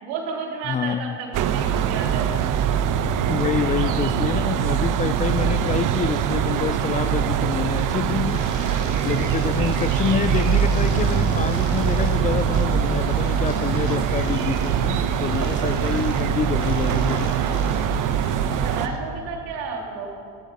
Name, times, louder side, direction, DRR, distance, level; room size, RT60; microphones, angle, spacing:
voice 1, 0.0-2.6 3.5-3.6 18.6-20.1, right 5 dB, 75° right, 0 dB, 3.5 m, -32 dB
voice 2, 0.7-1.2 3.3-8.4 8.7-17.4, left 7 dB, 20° left, 14 dB, 0.3 m, -27 dB
sound 1, 1.3-18.9, right 8 dB, 55° right, 1.1 m, -22 dB
sound 2, 8.2-19.0, left 5 dB, 50° left, 3.0 m, -40 dB
17.5 x 15.0 x 5.3 m, 2.4 s
supercardioid pair, 95°, 37 cm